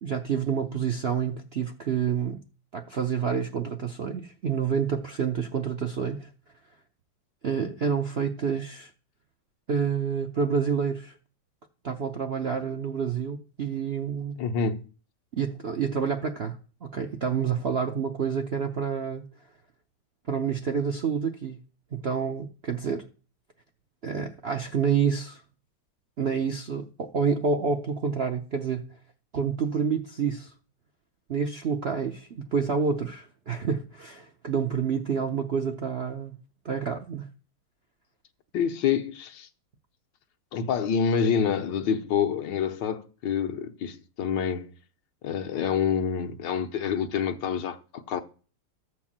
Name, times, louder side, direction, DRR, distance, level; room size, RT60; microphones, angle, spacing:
voice 1, 0.0-2.4 2.7-6.3 7.4-8.9 9.7-11.2 11.8-14.4 15.3-19.3 20.3-21.6 21.9-23.1 24.0-25.4 26.2-28.9 29.3-30.5 31.3-36.4 36.6-37.3, right 6 dB, 60° right, 0.6 m, -28 dB
voice 2, 14.4-14.8 38.5-39.5 40.5-44.7 45.2-48.2, left 7 dB, 75° left, 1.6 m, -27 dB
13.5 x 4.6 x 7.3 m
omnidirectional pair, 2.0 m